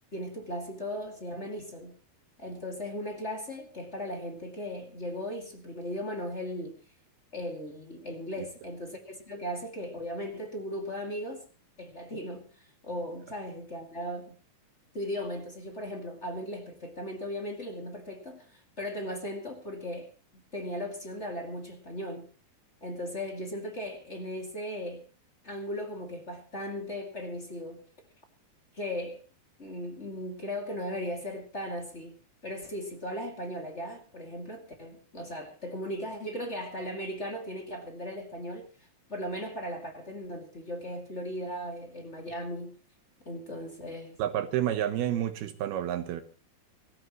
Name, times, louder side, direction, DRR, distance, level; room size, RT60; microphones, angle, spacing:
voice 1, 0.1-1.9 2.4-6.8 7.3-11.5 11.8-14.3 14.9-22.3 22.8-25.0 25.4-27.8 28.7-29.2 29.6-32.2 32.4-38.7 39.1-42.8 43.2-44.2, equal, 20° left, 1.9 m, -37 dB
voice 2, 44.2-46.2, right 11 dB, 75° right, 3.0 m, -29 dB
24.5 x 14.0 x 3.1 m
omnidirectional pair, 4.5 m